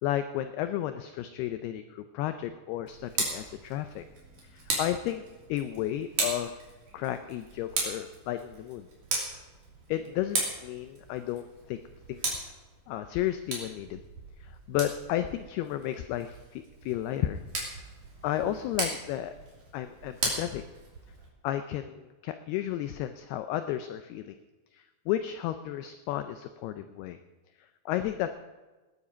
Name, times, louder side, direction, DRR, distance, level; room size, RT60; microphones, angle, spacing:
voice 1, 0.0-4.0 4.5-5.2 5.5-6.6 6.9-8.9 9.9-11.8 12.1-12.5 12.9-14.0 14.4-17.4 18.2-19.3 19.7-20.6 21.4-24.4 24.7-27.2 27.6-28.3, left 12 dB, 90° left, 9 dB, 2.2 m, -33 dB
Tick, 2.8-21.3, right 3 dB, 45° right, 3.9 m, -37 dB
19.5 x 9.8 x 5.1 m, 1.2 s
omnidirectional pair, 5.3 m